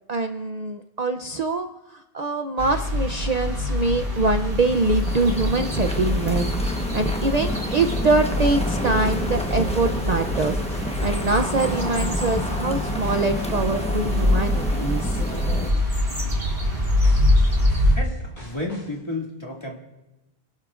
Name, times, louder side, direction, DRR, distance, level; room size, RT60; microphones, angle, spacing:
voice 1, 0.1-10.6 11.0-15.2, right 3 dB, 45° right, 6 dB, 0.7 m, -24 dB
sound 1, 2.6-18.0, left 1 dB, 65° right, 4.1 m, -24 dB
sound 2, 4.1-15.7, left 1 dB, 5° left, 0.9 m, -30 dB
sound 3, 8.4-15.3 15.7-16.0 16.4-19.0, equal, 85° left, 4.6 m, -43 dB
voice 2, 17.9-19.8, left 2 dB, 25° left, -1 dB, 2.2 m, -32 dB
29.5 x 12.0 x 2.5 m, 1.0 s
omnidirectional pair, 1.1 m